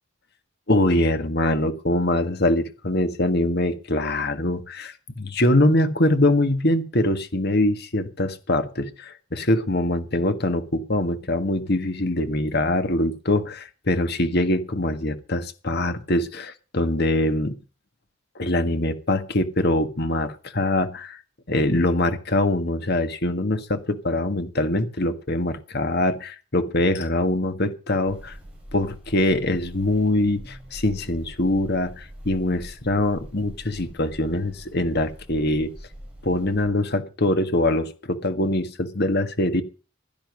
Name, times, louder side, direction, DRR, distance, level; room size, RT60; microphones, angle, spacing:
voice 1, 0.7-17.6 18.3-21.2 21.5-28.4 28.7-35.7 36.2-39.6, left 1 dB, 50° left, 9 dB, 1.7 m, -23 dB
sound 1, 28.0-36.7, equal, 5° right, 7.2 m, -43 dB
16.0 x 11.5 x 5.2 m, 0.36 s
head